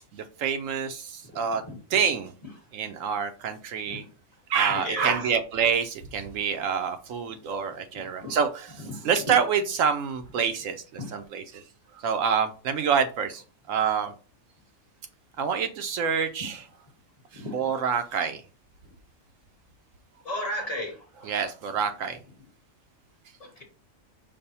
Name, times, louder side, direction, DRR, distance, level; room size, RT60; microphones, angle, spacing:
voice 1, 0.1-1.6 1.9-2.3 2.7-4.0 4.5-11.6 12.0-13.4 13.7-14.1 15.4-16.7 17.3-18.4 21.2-22.2, right 7 dB, 75° right, 0.9 m, -27 dB
voice 2, 20.2-20.9, left 1 dB, 30° left, 1.0 m, -33 dB
5.3 x 2.1 x 4.1 m
omnidirectional pair, 1.4 m